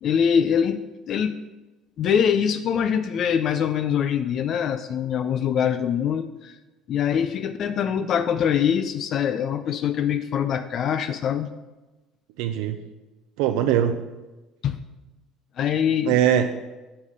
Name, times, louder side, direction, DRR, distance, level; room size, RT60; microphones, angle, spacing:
voice 1, 0.0-1.4 2.0-6.5 6.9-11.5 14.6-14.8 15.6-16.2, left 8 dB, 55° left, 10 dB, 0.5 m, -23 dB
voice 2, 12.4-12.8 13.4-14.1 16.1-16.8, right 10 dB, 80° right, 7 dB, 0.5 m, -22 dB
8.7 x 5.6 x 6.4 m, 1.1 s
supercardioid pair, 90°, 0 cm